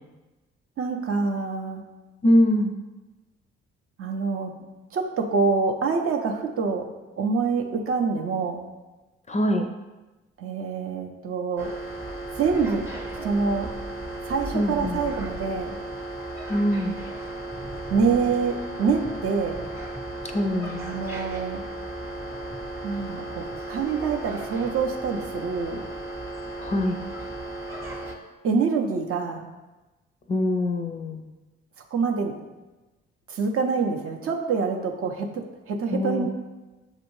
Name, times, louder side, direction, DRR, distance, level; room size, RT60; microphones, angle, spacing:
voice 1, 0.8-1.8 4.0-4.5 4.9-6.9 7.2-8.6 10.4-11.7 12.4-12.9 13.1-13.7 14.3-15.8 17.9-19.6 20.8-21.6 22.8-25.8 28.4-29.5 31.9-32.3 33.3-36.3, right 5 dB, 45° right, 3 dB, 0.6 m, -26 dB
voice 2, 2.2-2.8 9.3-9.7 14.5-15.0 16.5-17.0 20.3-20.9 26.6-27.0 30.3-31.3 35.9-36.3, left 1 dB, 25° left, 5 dB, 0.4 m, -23 dB
sound 1, 11.6-28.2, right 2 dB, 10° right, 0.8 m, -35 dB
6.4 x 2.5 x 3.1 m, 1.1 s
hypercardioid pair, 45°, 31 cm